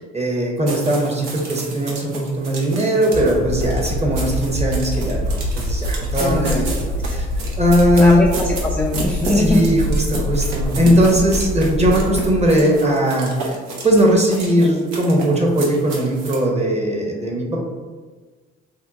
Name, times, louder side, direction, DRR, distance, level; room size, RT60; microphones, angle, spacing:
voice 1, 0.1-7.3 7.6-8.2 9.3-13.6 13.8-17.7, equal, 20° right, -1 dB, 0.9 m, -19 dB
sound 1, 0.7-16.4, right 2 dB, 75° right, 0.7 m, -32 dB
sound 2, 3.1-12.5, equal, 90° left, 0.5 m, -25 dB
voice 2, 8.0-9.8, left 1 dB, 5° left, -2 dB, 0.3 m, -21 dB
2.7 x 2.2 x 3.5 m, 1.4 s
hypercardioid pair, 50°, 32 cm